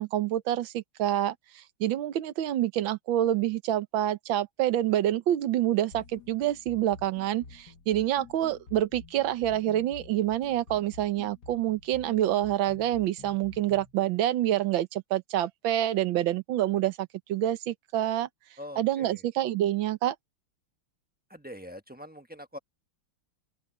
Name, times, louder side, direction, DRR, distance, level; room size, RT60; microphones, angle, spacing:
voice 1, 0.0-18.3 18.8-20.1, right 12 dB, 70° right, 1.6 m, -27 dB
sound 1, 5.9-13.9, left 5 dB, 50° left, 2.2 m, -50 dB
voice 2, 18.6-19.2 21.3-22.6, equal, 5° right, 0.7 m, -43 dB
open air
omnidirectional pair, 2.4 m